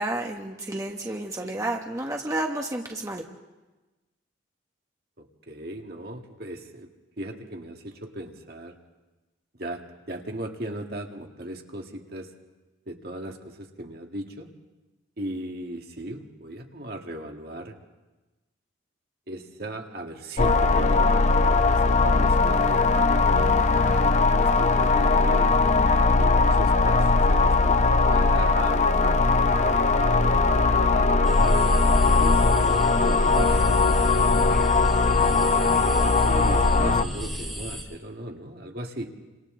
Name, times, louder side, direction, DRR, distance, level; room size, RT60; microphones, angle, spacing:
voice 1, 0.0-3.2, right 1 dB, 15° right, 1 dB, 1.2 m, -31 dB
voice 2, 5.2-6.9 7.2-8.8 9.6-12.3 12.9-14.5 15.2-17.8 19.3-21.2 21.7-23.8 24.3-25.6 26.2-29.1 30.0-30.5 30.9-34.2 35.0-39.2, right 1 dB, 50° right, 2 dB, 1.8 m, -37 dB
sound 1, 20.4-37.1, left 3 dB, 35° left, 0.6 m, -20 dB
sound 2, 31.2-37.8, equal, ahead, 4.9 m, -30 dB
30.0 x 26.0 x 3.8 m, 1.1 s
head